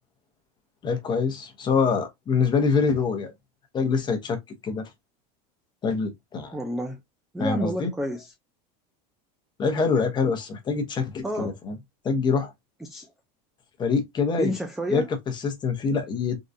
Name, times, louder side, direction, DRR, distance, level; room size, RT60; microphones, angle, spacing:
voice 1, 0.8-3.3 3.7-4.9 5.8-6.6 7.4-7.9 9.6-11.8 12.0-12.5 13.8-14.5 14.9-16.4, left 5 dB, 20° left, 0.8 m, -25 dB
voice 2, 6.5-7.0 7.3-8.3 11.2-11.6 12.8-13.1 14.4-15.1, equal, ahead, 0.3 m, -29 dB
3.7 x 2.3 x 2.6 m
supercardioid pair, 145°, 21 cm